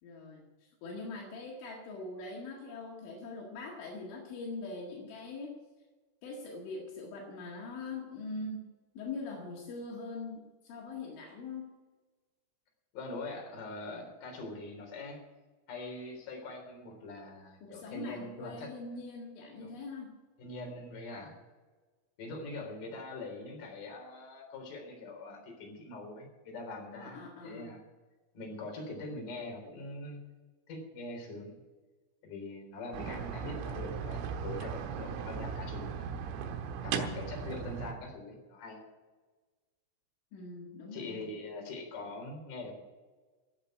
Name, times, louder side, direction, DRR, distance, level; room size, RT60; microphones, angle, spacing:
voice 1, 0.0-5.6 6.2-8.7 9.0-11.7 17.6-20.1 26.9-27.7 36.8-37.2 40.3-41.3, left 3 dB, 75° left, -2 dB, 4.3 m, -42 dB
voice 2, 12.9-15.2 15.7-18.7 19.6-19.7 20.4-21.4 22.2-27.8 28.3-30.2 30.7-31.6 32.2-36.4 36.8-38.8 40.9-42.8, left 2 dB, 45° left, 1 dB, 4.8 m, -43 dB
sound 1, 32.9-37.9, right 7 dB, 90° right, 3.9 m, -37 dB
14.5 x 8.1 x 9.2 m, 1.3 s
omnidirectional pair, 5.7 m